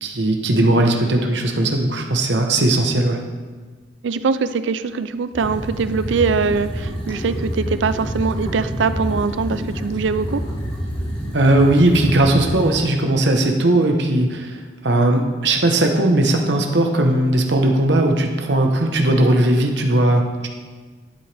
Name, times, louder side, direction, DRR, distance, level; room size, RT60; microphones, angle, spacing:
voice 1, 0.0-3.2 11.3-20.5, right 1 dB, 75° right, 3 dB, 1.1 m, -18 dB
voice 2, 4.0-10.4, right 5 dB, 90° right, 13 dB, 0.4 m, -22 dB
sound 1, 5.3-12.8, equal, 30° left, 2.7 m, -28 dB
11.5 x 8.0 x 3.4 m, 1.4 s
head